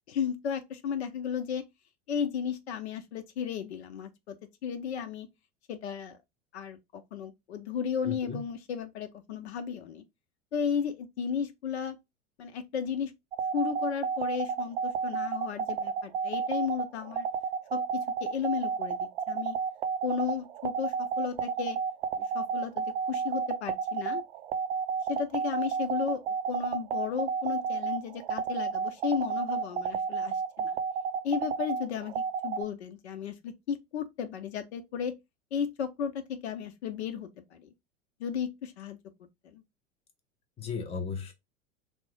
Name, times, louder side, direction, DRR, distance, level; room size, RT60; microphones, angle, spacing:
voice 1, 0.1-1.7 2.1-4.3 4.6-5.3 5.7-6.2 6.5-10.0 10.5-12.0 12.4-13.1 13.5-17.3 17.7-19.6 20.0-21.8 22.2-24.2 25.1-30.8 31.2-35.1 35.5-37.7 38.2-39.0 39.5-39.6, left 7 dB, 60° left, 0.6 m, -34 dB
voice 2, 8.0-8.4 40.6-41.3, left 5 dB, 15° left, 0.6 m, -35 dB
sound 1, 13.3-32.6, right 6 dB, 55° right, 0.4 m, -30 dB
3.3 x 2.0 x 3.1 m
figure-of-eight pair, 90°, 37 cm